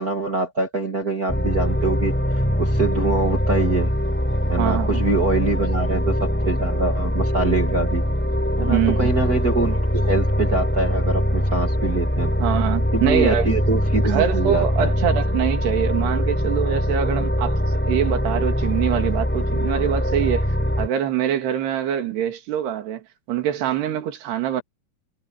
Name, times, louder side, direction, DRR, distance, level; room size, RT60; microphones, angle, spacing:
voice 1, 0.0-2.1 2.6-3.9 4.5-8.0 8.6-12.3 12.9-14.9, right 3 dB, 40° right, 1.3 m, -24 dB
sound 1, 1.3-20.9, equal, 5° left, 3.8 m, -22 dB
voice 2, 4.6-5.0 8.6-9.1 12.4-13.5 14.0-20.5 20.8-23.0 23.3-24.6, right 10 dB, 75° right, 4.5 m, -24 dB
omnidirectional pair, 4.8 m